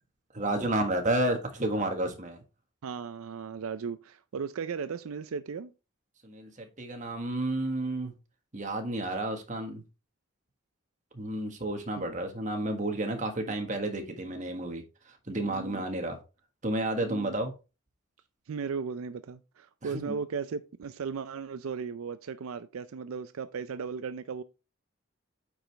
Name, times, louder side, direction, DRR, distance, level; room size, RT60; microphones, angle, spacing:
voice 1, 0.3-2.4 6.2-8.1 8.5-9.8 11.1-16.2 16.6-17.5 19.8-20.1, right 1 dB, 35° right, 1.5 m, -31 dB
voice 2, 2.8-5.7 12.0-12.1 15.3-15.9 17.0-17.3 18.5-24.4, right 5 dB, 85° right, 0.4 m, -36 dB
8.8 x 4.8 x 3.3 m
head